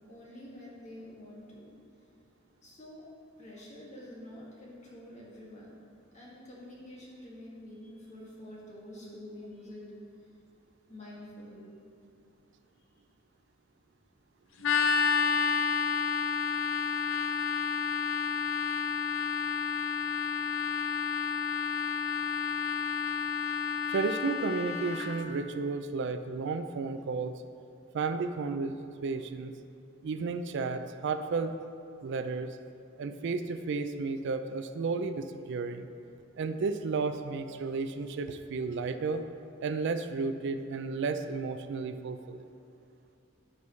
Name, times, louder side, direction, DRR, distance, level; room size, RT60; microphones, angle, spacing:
voice 1, 0.1-1.7 2.6-3.1 3.4-5.9 6.1-9.9 10.9-11.6, left 1 dB, 35° left, -5 dB, 1.9 m, -47 dB
sound 1, 14.6-25.2, left 6 dB, 65° left, 0.5 m, -30 dB
voice 2, 16.9-17.4 23.9-27.4 27.9-29.5 30.0-31.5 32.0-32.6 33.0-35.9 36.4-39.2 39.6-42.4, right 4 dB, 60° right, 9 dB, 0.4 m, -33 dB
14.0 x 5.4 x 3.2 m, 2.5 s
head